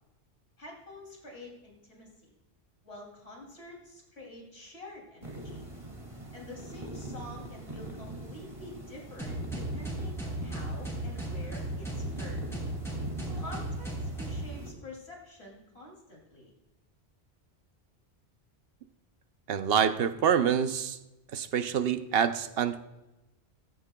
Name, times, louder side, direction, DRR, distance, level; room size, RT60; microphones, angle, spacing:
voice 1, 0.6-2.3 2.8-5.7 6.3-12.5 13.3-16.5, left 1 dB, 85° left, 3.1 m, -47 dB
sound 1, 5.2-14.7, right 1 dB, 30° right, 1.8 m, -43 dB
sound 2, 9.2-14.5, right 1 dB, ahead, 3.2 m, -35 dB
voice 2, 19.5-21.0 21.3-22.8, right 8 dB, 70° right, 0.8 m, -26 dB
14.0 x 14.0 x 2.2 m
omnidirectional pair, 1.1 m